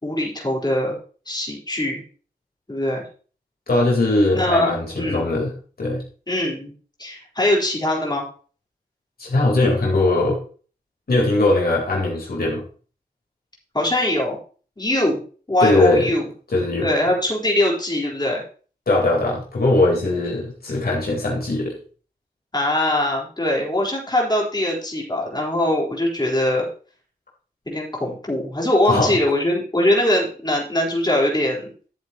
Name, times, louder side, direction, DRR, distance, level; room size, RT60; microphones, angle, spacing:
voice 1, 0.0-1.0 1.3-2.0 2.7-3.0 4.3-4.7 4.9-5.2 6.3-6.7 7.0-8.3 13.7-14.4 14.8-15.2 15.5-16.2 16.8-18.4 22.5-26.7 27.7-31.7, left 1 dB, 25° left, -3 dB, 4.2 m, -22 dB
voice 2, 3.7-5.5 5.8-6.0 9.2-10.4 11.1-12.6 15.6-16.1 16.5-16.9 18.9-21.7 28.9-29.1, left 2 dB, 70° left, -3 dB, 3.9 m, -20 dB
12.5 x 8.0 x 3.0 m, 0.39 s
cardioid pair, 50°, 16 cm